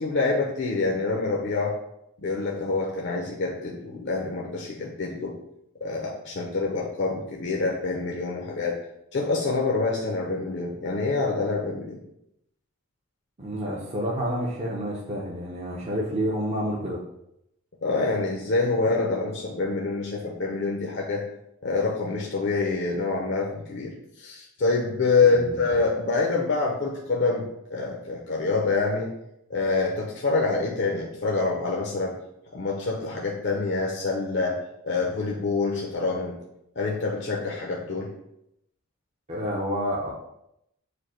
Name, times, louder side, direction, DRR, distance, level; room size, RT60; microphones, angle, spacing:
voice 1, 0.0-1.7 2.2-5.3 5.8-8.8 9.1-12.0 17.8-21.2 21.6-29.1 29.5-32.1 32.5-34.6 34.8-36.4 36.8-38.1, left 3 dB, 50° left, -2 dB, 0.6 m, -26 dB
voice 2, 13.4-17.0 25.3-25.6 39.3-40.1, equal, 30° right, -4 dB, 0.6 m, -29 dB
5.0 x 2.1 x 4.3 m, 0.80 s
head